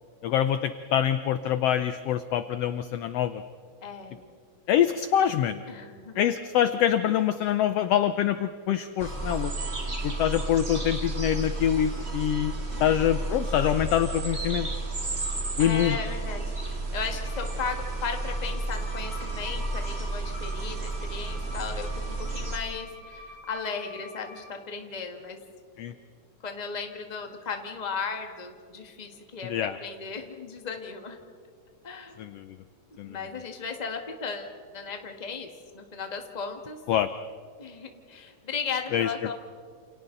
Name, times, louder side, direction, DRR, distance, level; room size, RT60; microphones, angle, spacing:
voice 1, 0.2-3.4 4.7-5.6 6.2-9.5 10.0-12.5 12.8-14.7 15.6-16.0 25.8-25.9 29.4-29.8 32.2-32.6 33.0-33.2 36.9-37.1 38.9-39.1, left 10 dB, 80° left, 11 dB, 1.4 m, -25 dB
voice 2, 3.8-4.4 5.7-6.3 12.7-13.1 15.6-25.4 26.4-31.2 31.8-32.2 33.0-35.5 35.7-36.8 37.6-39.3, left 5 dB, 20° left, 4 dB, 1.1 m, -36 dB
sound 1, 9.0-22.6, right 2 dB, 25° right, 1.6 m, -32 dB
Bowed string instrument, 17.2-24.5, left 1 dB, 55° right, 4.7 m, -47 dB
29.5 x 28.5 x 4.0 m, 2.1 s
omnidirectional pair, 3.6 m